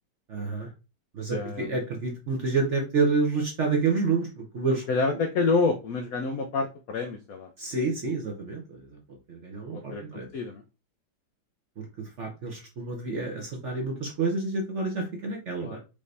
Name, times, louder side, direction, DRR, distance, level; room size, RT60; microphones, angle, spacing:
voice 1, 0.3-0.7 1.1-4.9 7.6-9.0 9.3-10.3 11.8-15.8, right 4 dB, 55° right, 1 dB, 0.8 m, -29 dB
voice 2, 1.3-1.7 4.9-7.5 9.7-10.6 15.6-15.8, left 3 dB, 80° left, 6 dB, 0.8 m, -28 dB
5.0 x 2.7 x 3.2 m, 0.30 s
omnidirectional pair, 2.1 m